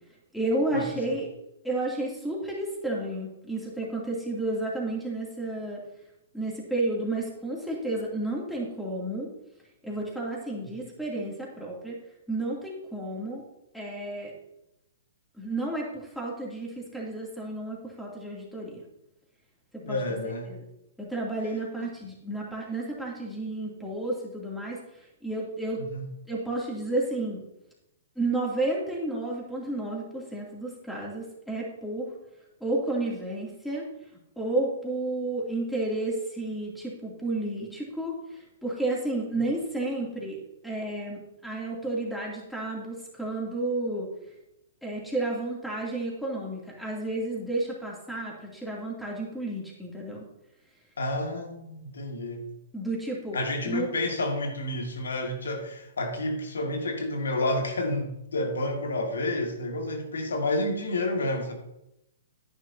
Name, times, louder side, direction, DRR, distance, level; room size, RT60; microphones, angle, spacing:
voice 1, 0.3-1.3 1.6-5.8 6.3-9.3 9.8-12.0 12.3-13.4 13.7-14.3 15.4-18.8 19.9-20.2 20.5-20.6 21.0-24.8 25.2-25.8 26.3-27.4 28.2-32.1 32.6-33.9 34.4-40.4 40.6-44.1 44.8-50.2 52.7-53.4 53.6-53.9, right 2 dB, ahead, -4 dB, 2.7 m, -31 dB
voice 2, 19.8-20.5 21.8-21.9 25.8-26.1 51.0-52.5 53.3-61.5, left 1 dB, 85° left, 3 dB, 2.0 m, -30 dB
10.5 x 10.0 x 2.8 m, 0.88 s
hypercardioid pair, 135°, 0 cm